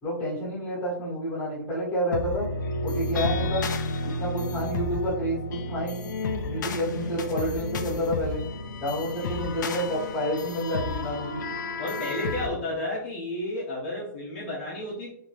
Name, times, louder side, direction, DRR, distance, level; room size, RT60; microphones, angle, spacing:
voice 1, 0.0-2.5 2.8-3.7 4.2-6.1 6.4-8.4 8.8-11.4, equal, 10° left, -8 dB, 1.6 m, -29 dB
sound 1, 2.1-12.5, left 2 dB, 60° left, 0.5 m, -31 dB
voice 2, 11.8-15.1, left 1 dB, 35° left, -6 dB, 0.9 m, -32 dB
4.0 x 2.9 x 3.1 m, 0.68 s
hypercardioid pair, 180°, 11 cm